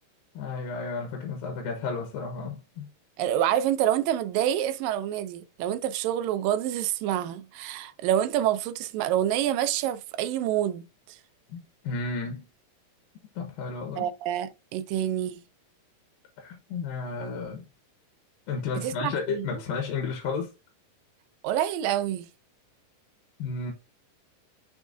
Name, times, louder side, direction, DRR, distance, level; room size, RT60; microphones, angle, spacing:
voice 1, 0.3-2.9 11.5-12.5 13.4-14.1 16.4-17.7 18.5-20.5 23.4-23.7, left 4 dB, 85° left, 2.8 m, -32 dB
voice 2, 3.2-11.2 14.0-15.4 18.8-19.5 21.4-22.3, right 11 dB, 90° right, 2.4 m, -27 dB
6.3 x 6.2 x 2.6 m
omnidirectional pair, 3.9 m